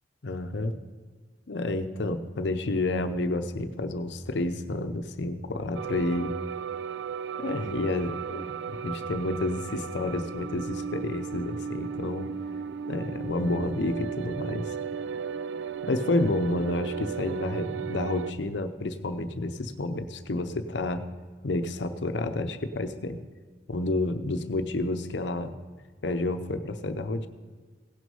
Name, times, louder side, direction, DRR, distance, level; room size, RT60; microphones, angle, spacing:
voice 1, 0.2-0.7 1.5-6.3 7.4-12.3 12.9-14.7 15.8-21.1 21.4-23.2 23.7-25.5 26.0-27.3, left 2 dB, 80° left, 9 dB, 0.7 m, -30 dB
sound 1, 5.7-18.3, right 7 dB, 80° right, 0.3 m, -35 dB
17.0 x 6.2 x 5.5 m, 1.4 s
head